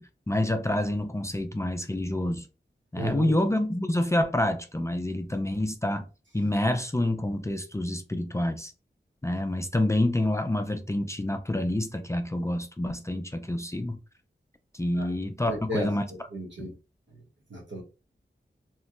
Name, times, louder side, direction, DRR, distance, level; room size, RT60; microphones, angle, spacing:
voice 1, 0.0-2.5 2.9-6.1 6.3-8.7 9.2-14.0 14.7-16.1 16.6-16.7, left 1 dB, 15° left, 0.4 m, -28 dB
voice 2, 2.9-3.4 15.0-15.1 15.5-15.9 16.3-16.7 17.5-17.8, right 1 dB, 75° right, 1.0 m, -33 dB
3.0 x 2.7 x 2.4 m
wide cardioid pair, 75°, 19 cm